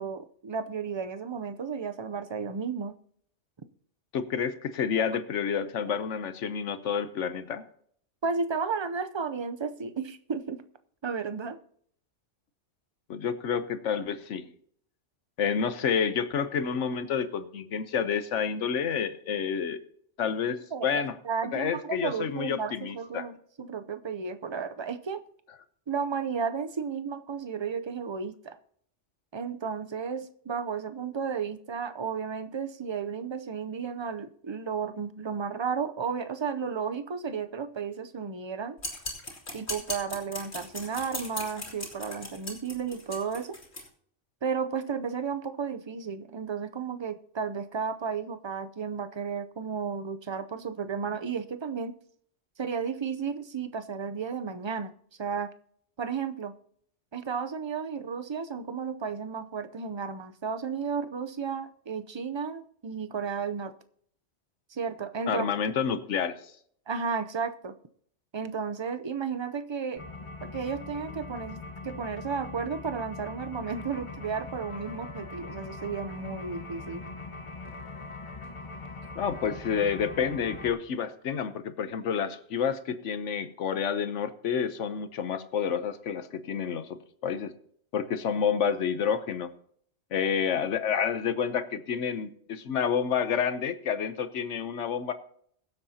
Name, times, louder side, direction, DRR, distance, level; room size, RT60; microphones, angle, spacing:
voice 1, 0.0-2.9 8.2-10.6 11.0-11.6 20.5-23.3 23.6-25.2 25.9-28.6 29.3-38.8 39.5-43.6 44.4-51.9 52.6-54.9 55.2-55.5 56.0-56.5 57.1-63.7 64.7-65.5 66.9-67.7 68.3-70.0 70.5-71.6 71.8-77.0, right 6 dB, 35° right, 10 dB, 0.5 m, -33 dB
voice 2, 4.1-7.6 13.1-14.4 15.4-19.8 20.2-21.1 21.4-23.3 65.3-66.3 79.2-87.0 87.2-87.5 87.9-89.5 90.1-95.1, left 7 dB, 85° left, 11 dB, 1.2 m, -29 dB
sound 1, 38.8-43.8, left 2 dB, 65° left, 2.9 m, -38 dB
sound 2, 70.0-80.7, left 3 dB, 25° left, 1.1 m, -41 dB
22.5 x 7.8 x 2.8 m, 0.64 s
omnidirectional pair, 1.2 m